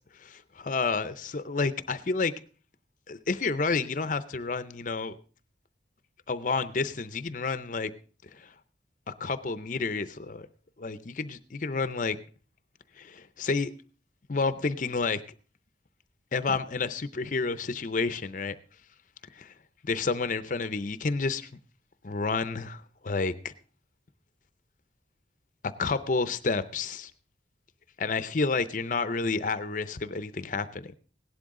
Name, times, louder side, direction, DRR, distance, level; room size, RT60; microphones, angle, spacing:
voice 1, 0.2-2.3 3.1-5.1 6.3-7.9 8.3-8.5 9.1-10.5 10.8-12.2 13.0-13.7 14.3-15.2 16.3-18.5 19.3-19.5 19.8-21.5 22.0-23.5 25.8-27.1 28.0-31.0, left 4 dB, 45° left, 0.6 m, -30 dB
17.0 x 11.5 x 3.7 m
head